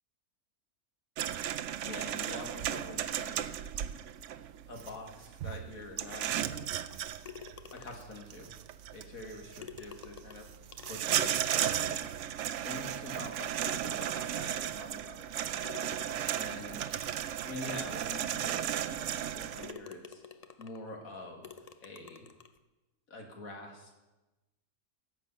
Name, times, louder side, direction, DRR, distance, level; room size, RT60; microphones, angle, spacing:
sound 1, 1.2-19.7, right 10 dB, 65° right, 0.8 m, -35 dB
voice 1, 1.8-3.5 4.7-6.8 7.7-8.5 8.9-10.5 10.8-12.2 12.6-15.8 16.3-16.8 17.4-20.2 20.6-22.3 23.1-24.0, left 2 dB, 65° left, 2 dB, 2.3 m, -46 dB
sound 2, 7.2-8.2 9.3-9.4 9.6-12.2 12.8-12.9 13.6-14.6 15.6-17.2 17.9-18.0 18.5-18.6 19.1-19.3 19.6-20.9 21.4-22.6, left 7 dB, 85° left, 0.3 m, -49 dB
14.5 x 8.0 x 5.5 m, 1.1 s
omnidirectional pair, 1.6 m